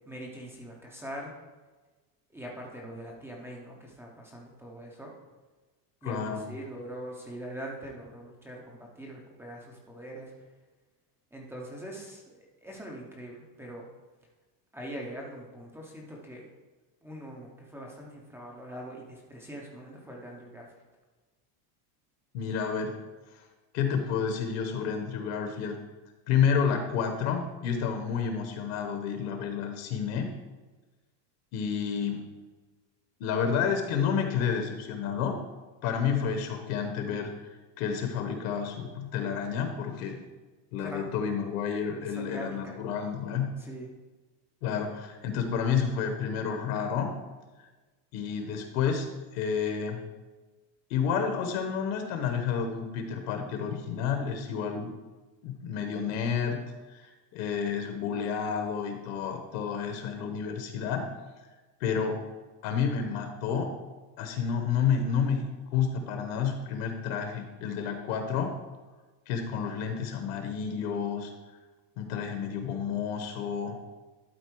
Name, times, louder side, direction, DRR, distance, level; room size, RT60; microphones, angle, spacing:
voice 1, 0.1-1.3 2.3-5.1 6.0-10.3 11.3-13.9 14.7-16.4 17.0-20.7 40.8-41.1 42.0-42.8 43.6-43.9, equal, 5° right, -2 dB, 0.5 m, -42 dB
voice 2, 6.0-6.4 22.3-22.9 23.3-23.4 23.7-25.7 26.3-30.3 31.5-32.2 33.2-35.4 35.8-40.2 40.7-43.5 44.6-47.1 48.1-50.0 50.9-54.9 55.4-56.6 56.9-61.0 61.8-62.2 62.6-63.7 64.2-65.4 65.7-68.5 69.3-71.3 72.0-73.7, left 7 dB, 55° left, 5 dB, 1.1 m, -30 dB
11.5 x 4.1 x 4.6 m, 1.2 s
cardioid pair, 170°, 50 cm